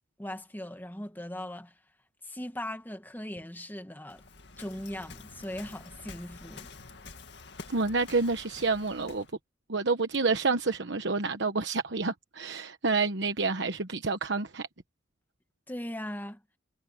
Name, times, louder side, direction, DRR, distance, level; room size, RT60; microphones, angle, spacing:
voice 1, 0.2-1.7 2.2-4.2 4.6-6.7 15.7-16.4, left 1 dB, 10° left, 1.7 m, -39 dB
Waves surf, 4.1-9.3, left 3 dB, 65° left, 2.2 m, -48 dB
voice 2, 7.7-9.3 9.7-14.7, right 4 dB, 65° right, 1.2 m, -28 dB
head